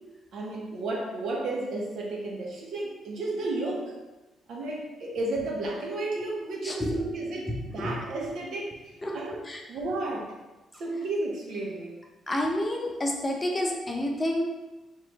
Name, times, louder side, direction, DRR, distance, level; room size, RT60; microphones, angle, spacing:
voice 1, 0.3-3.9 4.5-9.4 9.7-10.3 10.8-11.9, right 2 dB, 70° right, -2 dB, 1.0 m, -33 dB
voice 2, 12.3-14.4, left 1 dB, 20° left, 0 dB, 0.6 m, -28 dB
3.7 x 3.1 x 3.1 m, 1.1 s
cardioid pair, 90°, 0 cm